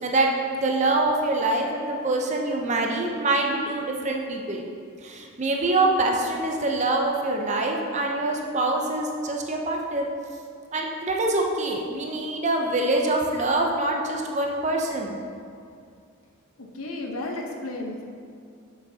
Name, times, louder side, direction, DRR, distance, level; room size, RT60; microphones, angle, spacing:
voice 1, 0.0-4.6 5.0-10.1 10.7-15.2, right 2 dB, 35° right, 1 dB, 0.6 m, -25 dB
voice 2, 16.7-18.0, left 2 dB, 75° left, 1 dB, 0.8 m, -32 dB
7.4 x 6.2 x 2.7 m, 2.3 s
head